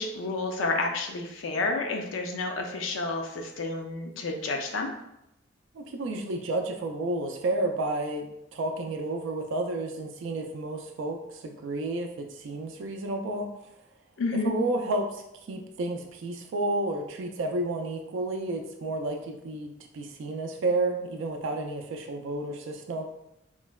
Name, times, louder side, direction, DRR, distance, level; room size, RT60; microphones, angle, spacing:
voice 1, 0.0-4.9 14.2-14.5, left 3 dB, 75° left, 3 dB, 0.4 m, -30 dB
voice 2, 5.7-13.5 14.3-15.2 15.5-23.0, right 2 dB, 65° right, 3 dB, 0.3 m, -31 dB
3.7 x 2.0 x 2.2 m, 0.83 s
head